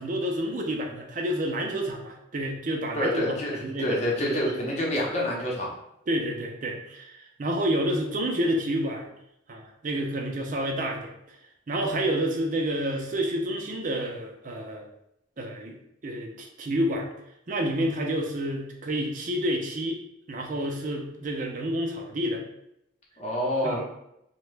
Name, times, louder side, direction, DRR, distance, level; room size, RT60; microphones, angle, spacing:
voice 1, 0.0-4.6 4.9-5.0 6.1-9.1 9.5-11.1 11.7-14.9 15.4-15.8 16.0-17.1 17.5-20.0 20.3-22.4 23.6-23.8, right 1 dB, 45° right, 2 dB, 0.5 m, -29 dB
voice 2, 2.9-5.7 23.2-23.8, left 1 dB, 40° left, -3 dB, 0.8 m, -27 dB
2.7 x 2.2 x 3.2 m, 0.79 s
head